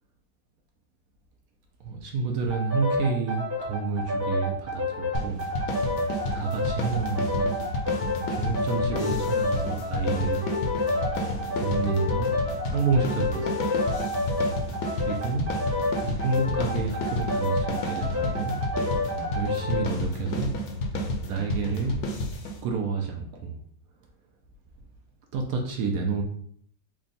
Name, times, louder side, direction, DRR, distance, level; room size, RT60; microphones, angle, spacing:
voice 1, 1.8-5.4 6.3-7.6 8.3-10.4 11.5-12.3 12.6-13.7 15.0-15.5 15.9-18.6 19.3-20.5 21.3-22.0 22.6-23.6 25.3-26.2, right 4 dB, 70° right, 2 dB, 0.9 m, -29 dB
sound 1, 2.5-19.9, left 2 dB, 15° right, 0.5 m, -29 dB
sound 2, 5.1-22.6, left 2 dB, 75° left, 1.1 m, -31 dB
3.5 x 2.2 x 3.9 m, 0.63 s
omnidirectional pair, 1.8 m